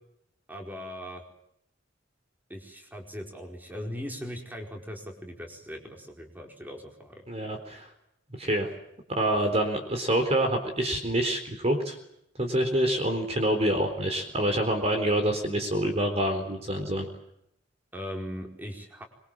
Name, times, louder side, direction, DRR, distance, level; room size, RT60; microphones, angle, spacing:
voice 1, 0.5-1.2 2.5-7.2 17.9-19.0, equal, 10° right, 2 dB, 4.6 m, -39 dB
voice 2, 7.3-7.9 8.4-8.7 9.1-12.0 12.4-17.1, right 1 dB, 35° right, 5 dB, 4.0 m, -26 dB
25.5 x 23.0 x 7.5 m, 0.77 s
head